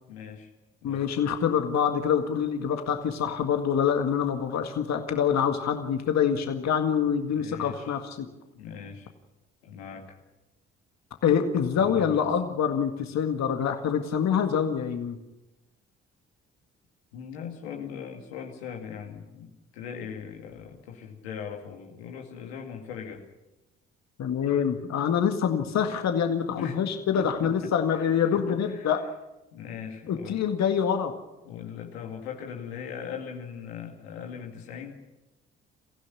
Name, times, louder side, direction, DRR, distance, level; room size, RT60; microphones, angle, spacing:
voice 1, 0.1-0.5 0.8-1.0 7.3-7.9 8.5-9.1 9.6-10.2 11.7-12.3 17.1-23.3 26.5-26.8 27.1-28.9 29.5-30.4 31.4-35.0, left 7 dB, 90° left, 2 dB, 2.3 m, -40 dB
voice 2, 0.8-8.3 11.2-15.2 24.2-29.0 30.1-31.1, left 8 dB, 60° left, 6 dB, 2.0 m, -25 dB
24.0 x 15.5 x 8.6 m, 0.97 s
hypercardioid pair, 50°, 31 cm